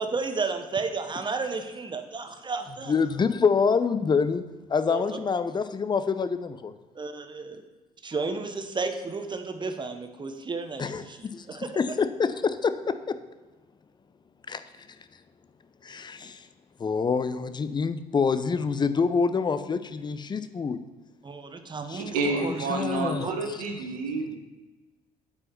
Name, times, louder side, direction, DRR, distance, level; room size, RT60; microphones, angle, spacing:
voice 1, 0.0-2.9 4.9-5.0 6.9-7.6 8.0-11.7 21.2-22.6 23.2-23.3, right 4 dB, 25° right, 7 dB, 0.9 m, -33 dB
voice 2, 2.9-4.4 4.7-6.7 10.8-13.2 14.5-14.6 15.8-16.5 16.8-20.8 21.9-23.6, left 5 dB, 25° left, 12 dB, 0.5 m, -27 dB
voice 3, 22.0-24.4, right 3 dB, 75° right, 3 dB, 1.1 m, -29 dB
8.5 x 4.8 x 4.4 m, 1.2 s
figure-of-eight pair, 50°, 19 cm